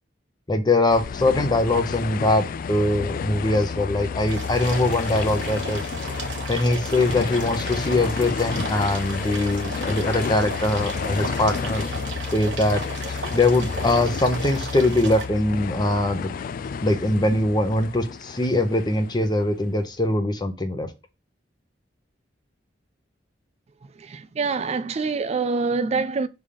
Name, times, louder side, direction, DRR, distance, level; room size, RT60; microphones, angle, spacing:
voice 1, 0.5-5.8 6.5-11.8 12.3-16.3 16.8-20.9, left 2 dB, 25° left, 0.8 m, -22 dB
sound 1, 0.9-19.7, left 5 dB, 50° left, 0.3 m, -31 dB
sound 2, 4.3-15.2, right 3 dB, 80° right, 1.2 m, -36 dB
voice 2, 23.8-26.3, right 4 dB, 35° right, 0.3 m, -26 dB
5.5 x 3.5 x 5.0 m
head